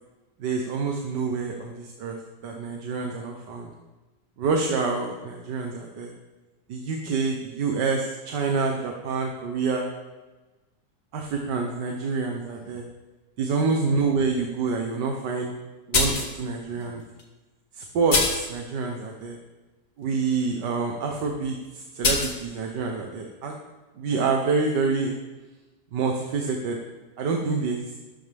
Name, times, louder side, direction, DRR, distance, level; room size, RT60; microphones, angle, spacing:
voice 1, 0.4-3.7 4.4-6.1 6.7-9.9 11.1-12.9 13.4-15.5 15.9-17.0 17.7-19.4 20.0-23.5 24.0-25.1 25.9-26.8 27.2-27.9, right 4 dB, 70° right, 2 dB, 1.6 m, -27 dB
sound 1, 15.9-16.3 17.2-17.3 18.1-18.5 22.0-22.3, left 3 dB, 50° left, 1.9 m, -23 dB
13.0 x 12.0 x 3.5 m, 1.2 s
omnidirectional pair, 1.9 m